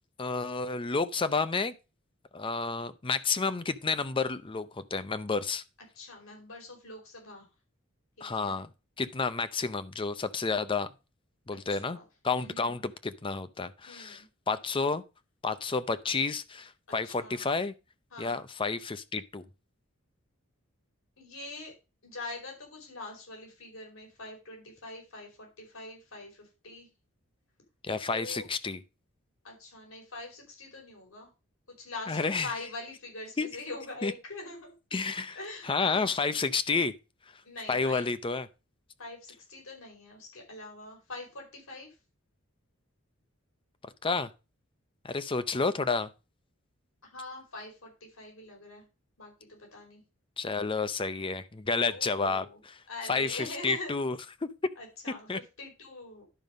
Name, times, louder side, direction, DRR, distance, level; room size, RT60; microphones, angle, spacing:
voice 1, 0.2-1.7 2.3-5.6 8.2-8.7 9.0-10.9 11.5-12.0 12.2-15.0 15.4-17.7 18.2-19.4 27.8-28.8 32.1-32.5 33.4-33.5 34.0-34.1 34.9-35.4 35.6-36.9 37.7-38.5 44.0-44.3 45.0-46.1 50.4-52.8 53.1-54.2 55.3-55.4, left 4 dB, 25° left, 0.6 m, -30 dB
voice 2, 5.9-7.5 8.2-8.6 11.7-12.0 12.3-12.7 13.9-14.3 16.9-17.4 18.1-18.4 21.2-21.7 22.0-26.9 28.1-28.5 29.4-31.3 31.8-34.7 35.3-36.1 37.4-38.1 39.0-41.9 47.0-48.8 49.2-50.0 51.8-52.6 52.9-54.0 54.8-56.2, left 2 dB, 75° left, 4.9 m, -43 dB
11.0 x 5.4 x 5.2 m
head